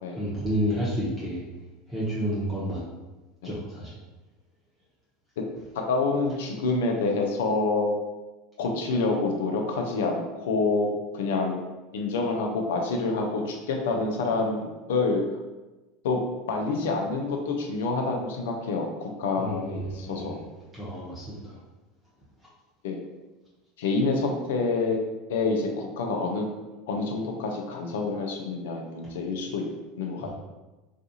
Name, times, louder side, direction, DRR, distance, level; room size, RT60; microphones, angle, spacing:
voice 1, 0.1-1.4 1.9-2.8 3.4-3.9 19.4-20.4 20.7-21.6 30.2-30.3, equal, 15° right, -9 dB, 0.9 m, -30 dB
voice 2, 5.7-7.9 8.6-11.6 11.9-15.2 16.0-16.2 16.5-20.4 22.8-23.0 23.8-25.0 25.3-26.4 26.9-29.6 30.0-30.3, left 3 dB, 75° left, 2 dB, 0.5 m, -27 dB
2.4 x 2.3 x 2.7 m, 1.1 s
hypercardioid pair, 85°, 0 cm